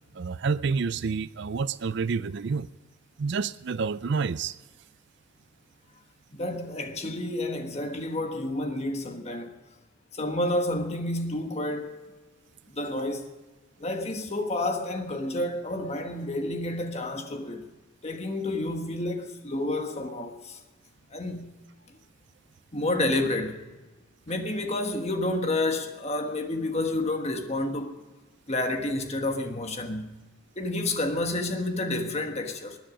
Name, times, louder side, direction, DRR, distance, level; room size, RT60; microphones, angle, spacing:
voice 1, 0.1-2.7 3.2-4.6, right 5 dB, 55° right, 0.4 m, -28 dB
voice 2, 6.3-9.6 10.1-12.0 12.7-13.3 13.8-17.7 18.0-20.6 21.1-21.5 22.7-23.6 24.3-28.0 28.5-30.1 30.6-32.8, left 2 dB, 30° left, 1.4 m, -30 dB
20.0 x 10.0 x 5.1 m
head